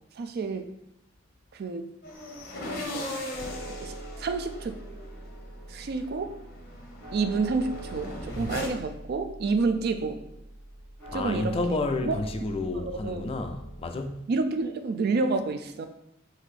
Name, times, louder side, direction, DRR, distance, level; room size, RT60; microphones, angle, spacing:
voice 1, 0.2-0.7 1.5-1.9 3.8-4.8 5.7-6.4 7.1-10.2 11.1-12.2 12.9-13.2 14.3-15.9, right 4 dB, 55° right, 0.4 m, -29 dB
sound 1, 2.0-8.7, left 1 dB, 50° left, 0.8 m, -39 dB
sound 2, 3.3-13.9, right 2 dB, 10° left, 1.7 m, -43 dB
voice 2, 11.1-14.3, left 2 dB, 30° left, 0.4 m, -30 dB
3.9 x 2.7 x 4.8 m
head